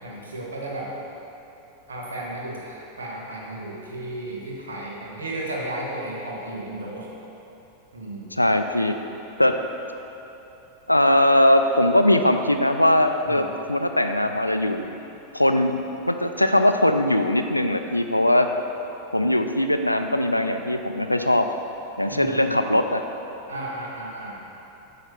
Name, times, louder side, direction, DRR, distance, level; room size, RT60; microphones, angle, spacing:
voice 1, 0.0-0.9 1.9-7.1 7.9-8.3 13.2-13.5 22.1-22.6 23.5-24.4, right 1 dB, 70° right, -3 dB, 1.3 m, -34 dB
voice 2, 8.3-8.9 9.4-9.5 10.9-14.9 15.3-18.5 19.1-21.5 22.0-23.0, left 1 dB, 85° left, 7 dB, 0.3 m, -20 dB
8.8 x 3.3 x 5.9 m, 3.0 s
figure-of-eight pair, 90°, 0 cm